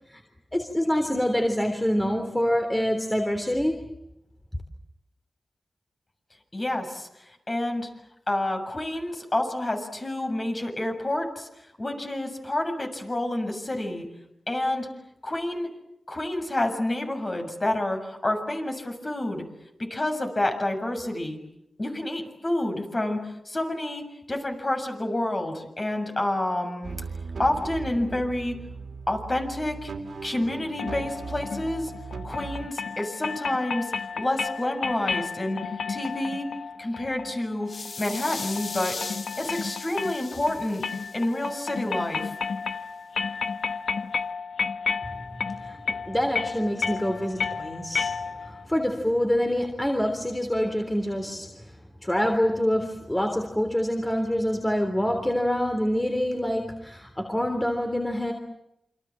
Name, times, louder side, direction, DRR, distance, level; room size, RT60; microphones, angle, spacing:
voice 1, 0.5-3.9 45.3-48.1 48.4-58.3, equal, 10° left, 5 dB, 3.4 m, -26 dB
voice 2, 6.5-7.9 8.3-11.5 11.8-14.1 14.5-14.9 15.2-15.7 16.1-19.4 19.9-21.4 21.8-27.0 27.4-28.6 29.1-29.9 30.2-31.9 32.2-35.6 35.9-36.5 36.8-39.0 39.4-40.9 41.1-42.3, left 1 dB, 35° left, 4 dB, 7.2 m, -29 dB
sound 1, 26.8-32.7, right 4 dB, 80° right, 3.1 m, -38 dB
sound 2, 30.8-48.6, left 5 dB, 85° left, 0.9 m, -33 dB
sound 3, 37.7-41.7, left 4 dB, 65° left, 2.1 m, -38 dB
28.5 x 26.0 x 7.6 m, 0.82 s
wide cardioid pair, 70°, 0 cm